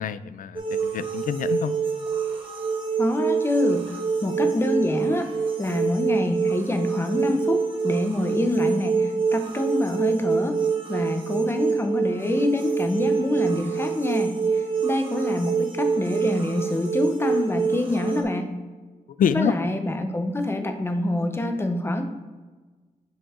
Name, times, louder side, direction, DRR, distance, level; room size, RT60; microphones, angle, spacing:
voice 1, 0.0-1.7 19.2-19.5, left 8 dB, 75° left, 14 dB, 0.4 m, -26 dB
sound 1, 0.6-18.2, right 5 dB, 35° right, 1.4 m, -26 dB
voice 2, 3.0-10.6 10.9-18.5 19.3-22.0, left 1 dB, 15° left, 6 dB, 0.7 m, -26 dB
7.2 x 5.2 x 3.7 m, 1.3 s
wide cardioid pair, 135°, 14 cm